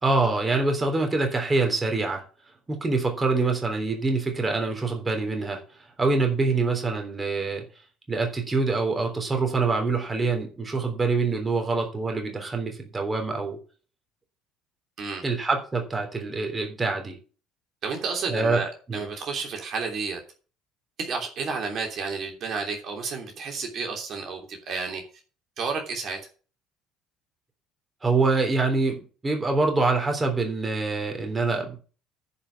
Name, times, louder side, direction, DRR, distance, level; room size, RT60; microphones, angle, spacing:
voice 1, 0.0-2.2 2.7-5.6 6.0-7.6 8.1-13.6 15.2-17.2 18.3-18.6 18.9-19.0 28.0-31.8, right 3 dB, 20° right, 3 dB, 3.4 m, -25 dB
voice 2, 17.8-20.2 21.0-25.0 25.6-26.2, right 4 dB, 50° right, 2 dB, 3.1 m, -31 dB
10.5 x 5.3 x 8.3 m, 0.38 s
cardioid pair, 110°, 0 cm